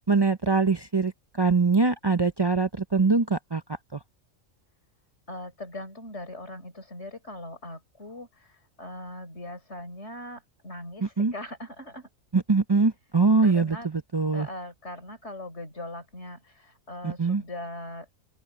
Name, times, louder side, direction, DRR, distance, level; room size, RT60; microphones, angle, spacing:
voice 1, 0.1-4.0 11.0-11.3 12.3-14.5 17.0-17.4, right 4 dB, 35° right, 0.4 m, -23 dB
voice 2, 5.3-12.1 13.4-13.9 14.3-18.1, left 1 dB, 55° left, 6.5 m, -40 dB
open air
omnidirectional pair, 1.4 m